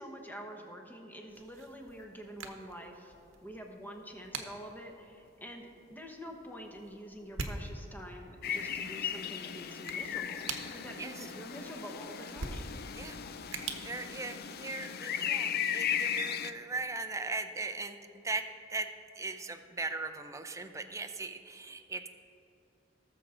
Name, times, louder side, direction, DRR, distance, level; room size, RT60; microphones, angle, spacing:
voice 1, 0.0-3.1 3.4-12.8, equal, 10° left, 2 dB, 1.1 m, -47 dB
sound 1, 1.3-15.0, right 3 dB, 80° right, 1.0 m, -46 dB
sound 2, 8.4-16.5, left 8 dB, 55° left, 0.5 m, -36 dB
voice 2, 13.8-22.1, right 3 dB, 15° right, 7 dB, 0.6 m, -39 dB
18.0 x 7.1 x 3.9 m, 2.7 s
head